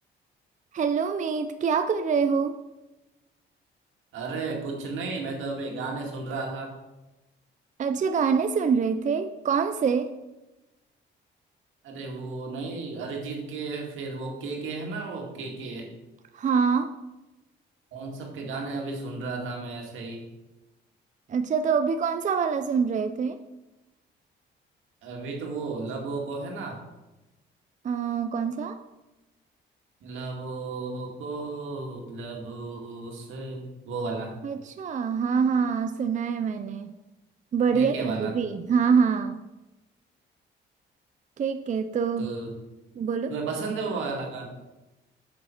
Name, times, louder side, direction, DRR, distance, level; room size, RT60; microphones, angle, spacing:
voice 1, 0.7-2.6 7.8-10.1 16.3-16.9 21.3-23.4 27.8-28.8 34.4-36.9 37.5-39.4 41.4-42.3 43.0-43.3, right 6 dB, 40° right, 9 dB, 0.5 m, -25 dB
voice 2, 4.1-6.7 11.8-15.9 17.9-20.2 25.0-26.8 30.0-34.4 37.7-38.3 42.2-42.5 43.3-44.5, right 3 dB, 80° right, 0 dB, 2.0 m, -34 dB
7.2 x 6.9 x 4.4 m, 1.0 s
cardioid pair, 90°, 20 cm